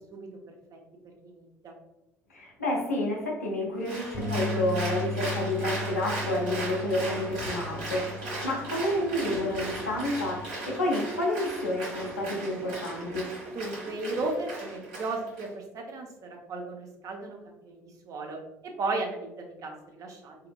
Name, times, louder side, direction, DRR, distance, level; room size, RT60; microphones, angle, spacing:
voice 1, 0.1-0.8 1.0-1.7 13.5-18.4 18.6-20.4, right 3 dB, 45° right, 2 dB, 0.6 m, -35 dB
voice 2, 2.3-13.3, left 1 dB, 85° left, -2 dB, 0.5 m, -30 dB
Applause, 3.8-15.5, right 2 dB, 60° right, 1.2 m, -37 dB
Bass guitar, 4.1-10.4, left 2 dB, 50° left, 0.6 m, -37 dB
2.7 x 2.4 x 2.2 m, 0.95 s
figure-of-eight pair, 55°, 8 cm